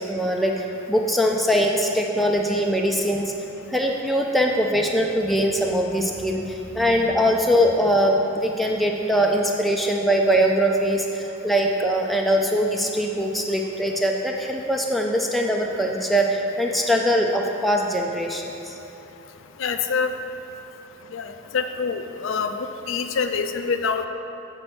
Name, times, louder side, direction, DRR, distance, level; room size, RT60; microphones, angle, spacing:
voice 1, 0.1-3.3 3.7-8.2 8.4-18.7, equal, ahead, 0 dB, 0.4 m, -22 dB
voice 2, 19.6-20.1 21.1-22.5 22.9-24.1, left 5 dB, 65° left, 7 dB, 0.4 m, -25 dB
7.7 x 4.4 x 6.0 m, 2.9 s
head